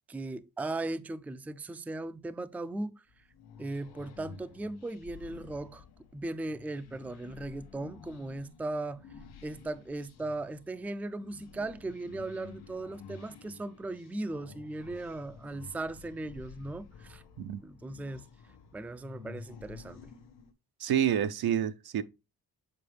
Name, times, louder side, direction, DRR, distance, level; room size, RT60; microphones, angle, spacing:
voice 1, 0.1-3.2 3.6-5.8 6.1-9.0 9.4-17.2 17.6-18.3 18.7-20.1, right 2 dB, 5° right, 0.4 m, -38 dB
sound 1, 3.1-20.5, left 5 dB, 90° left, 1.0 m, -51 dB
voice 2, 20.8-22.0, right 9 dB, 75° right, 0.7 m, -28 dB
7.6 x 4.6 x 3.3 m
cardioid pair, 100°, 38 cm